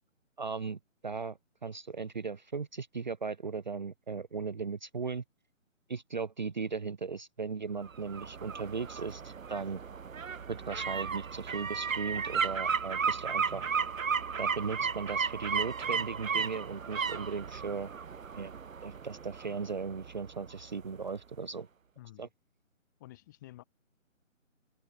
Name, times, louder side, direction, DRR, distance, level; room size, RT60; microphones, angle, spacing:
voice 1, 0.4-5.2 5.9-9.8 10.5-13.7 14.4-17.9 18.3-18.5 18.8-21.7 22.2-22.3, right 5 dB, 35° right, 1.1 m, -37 dB
sound 1, 7.8-20.7 21.0-21.1, right 6 dB, 75° right, 1.1 m, -34 dB
voice 2, 22.0-22.3 23.0-23.6, left 16 dB, 15° left, 2.9 m, -51 dB
open air
hypercardioid pair, 170°, 40 cm